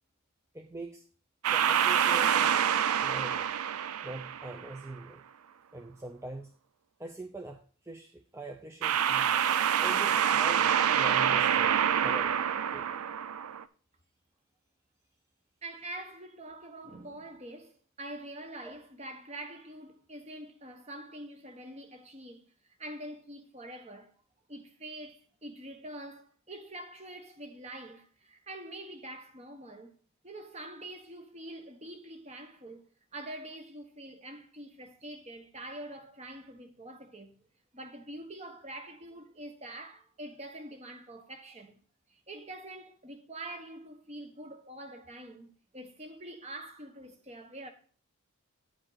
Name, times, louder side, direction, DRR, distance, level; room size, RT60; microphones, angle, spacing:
voice 1, 0.5-1.0 1.5-2.6 3.0-3.5 4.0-5.2 5.7-6.5 7.0-9.3 9.8-11.7 12.0-12.3 12.7-12.9 18.6-18.8, right 2 dB, 10° right, 0.5 m, -43 dB
sound 1, 1.4-4.8 8.8-13.6, right 9 dB, 90° right, 0.5 m, -26 dB
voice 2, 15.6-22.5 22.8-24.1 24.5-30.0 30.2-32.8 33.1-37.3 37.7-41.8 42.1-47.7, right 1 dB, 30° right, 1.0 m, -45 dB
10.0 x 5.2 x 3.9 m
head